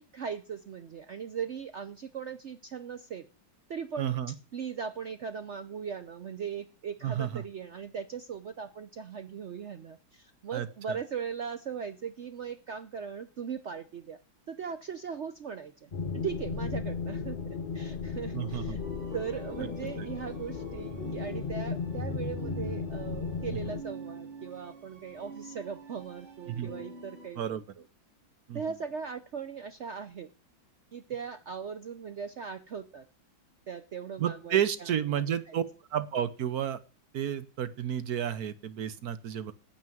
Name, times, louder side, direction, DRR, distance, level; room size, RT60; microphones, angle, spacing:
voice 1, 0.0-3.3 3.7-4.2 4.5-14.2 14.5-17.4 17.7-18.8 19.1-27.8 28.5-30.3 30.9-33.1 33.7-34.6 35.1-35.6, right 7 dB, 85° right, 10 dB, 0.6 m, -39 dB
voice 2, 4.0-4.3 7.0-7.4 10.5-11.0 18.3-18.8 20.0-20.1 26.5-26.7 27.4-27.6 28.5-28.6 34.2-35.6 35.9-36.8 37.1-39.5, right 9 dB, 60° right, 14 dB, 1.2 m, -31 dB
sound 1, 15.9-23.8, left 5 dB, 45° left, 0.6 m, -35 dB
sound 2, 18.8-27.3, right 2 dB, 35° right, 2.9 m, -46 dB
9.5 x 7.3 x 9.1 m, 0.34 s
omnidirectional pair, 2.2 m